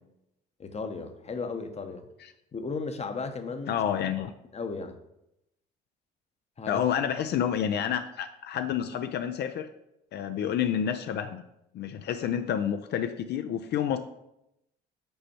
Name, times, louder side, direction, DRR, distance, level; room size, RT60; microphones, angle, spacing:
voice 1, 0.6-2.1 2.5-3.8 4.5-5.0 6.6-6.8, left 4 dB, 30° left, 8 dB, 0.8 m, -35 dB
voice 2, 3.7-4.3 6.7-9.7 10.1-11.4 11.7-14.0, left 9 dB, 60° left, 9 dB, 0.4 m, -29 dB
5.4 x 4.3 x 4.3 m, 0.84 s
supercardioid pair, 70°, 20 cm